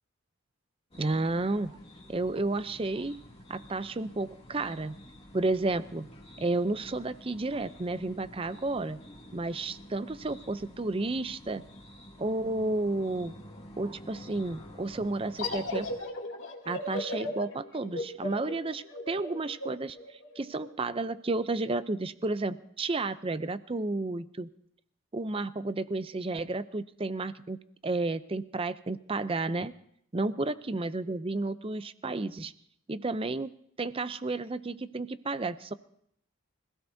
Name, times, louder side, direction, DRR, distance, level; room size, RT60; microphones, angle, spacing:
sound 1, 0.9-16.0, equal, 25° left, 2.5 m, -50 dB
voice 1, 1.0-1.8 2.1-3.2 3.5-4.9 5.3-6.1 6.4-9.0 9.3-11.6 12.2-13.3 13.8-15.9 16.7-24.5 25.1-27.6 27.8-29.7 30.1-32.5 32.9-33.5 33.8-35.7, right 2 dB, 25° right, 13 dB, 0.5 m, -32 dB
sound 2, 15.4-20.7, left 2 dB, 60° left, 2.5 m, -36 dB
26.0 x 16.5 x 2.7 m, 0.70 s
head